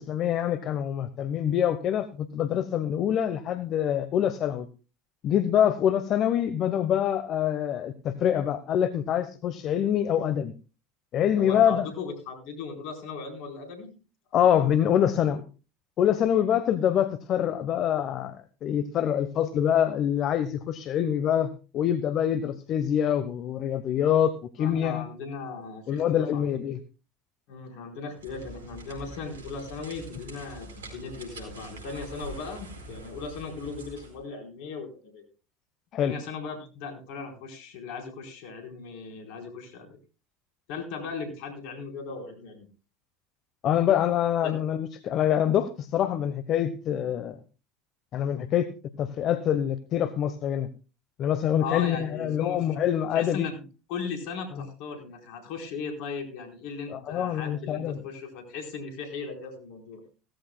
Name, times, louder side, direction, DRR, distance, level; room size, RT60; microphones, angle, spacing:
voice 1, 0.0-4.7 5.2-10.5 11.1-11.9 14.3-15.4 16.0-25.0 25.9-26.8 35.9-36.1 43.6-47.4 48.1-48.7 49.0-50.7 51.2-53.5 56.9-58.0, left 10 dB, 50° left, 12 dB, 1.0 m, -25 dB
voice 2, 11.4-14.0 24.6-26.4 27.5-35.3 36.0-39.9 40.7-42.7 44.4-44.5 51.6-52.6 53.1-53.6 53.9-60.0, left 5 dB, 65° left, 4 dB, 4.2 m, -37 dB
sound 1, 28.1-34.2, right 2 dB, 85° right, 4.3 m, -44 dB
17.0 x 14.5 x 2.3 m, 0.33 s
hypercardioid pair, 75°, 0 cm